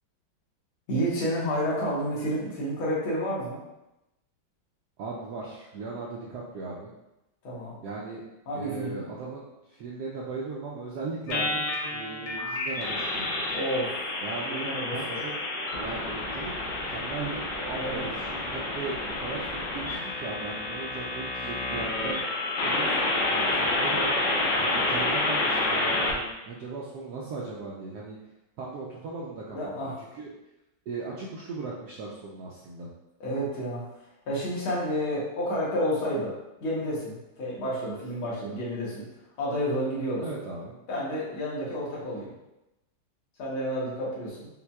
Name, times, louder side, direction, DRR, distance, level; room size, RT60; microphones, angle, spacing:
voice 1, 0.9-3.6 7.4-7.8 8.5-9.1 13.5-14.1 14.4-15.2 17.8-18.0 29.5-29.9 33.2-33.9 34.3-36.3 36.6-39.1 39.4-40.2 40.9-42.3 43.4-44.5, equal, 85° left, -6 dB, 1.9 m, -30 dB
voice 2, 5.0-6.9 7.8-8.2 8.5-13.4 14.2-15.3 15.8-22.3 22.6-24.1 24.6-28.2 28.6-30.3 30.9-32.9 40.2-40.7, right 4 dB, 80° right, -4 dB, 0.9 m, -38 dB
sound 1, 11.3-26.1, left 2 dB, 70° left, 1.1 m, -29 dB
5.5 x 2.2 x 2.2 m, 0.94 s
omnidirectional pair, 2.2 m